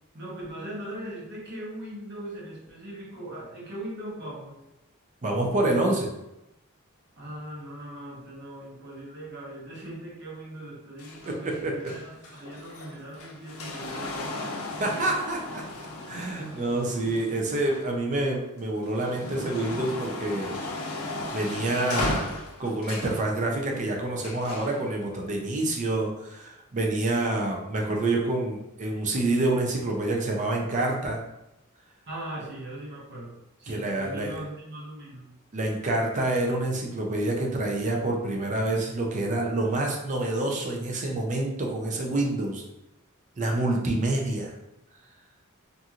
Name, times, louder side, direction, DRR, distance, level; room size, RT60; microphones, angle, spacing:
voice 1, 0.1-4.6 7.2-14.7 32.1-35.3, right 1 dB, 55° right, -4 dB, 0.9 m, -40 dB
voice 2, 5.2-6.1 11.3-11.8 14.8-15.6 16.1-20.5 21.3-22.3 22.6-31.2 33.7-34.3 35.5-42.6 43.4-44.5, right 2 dB, 35° right, 0 dB, 0.4 m, -27 dB
sound 1, 11.0-18.2 18.7-23.2 24.2-24.8 25.7-25.8, left 2 dB, 75° left, 0.5 m, -36 dB
2.9 x 2.5 x 2.4 m, 0.91 s
head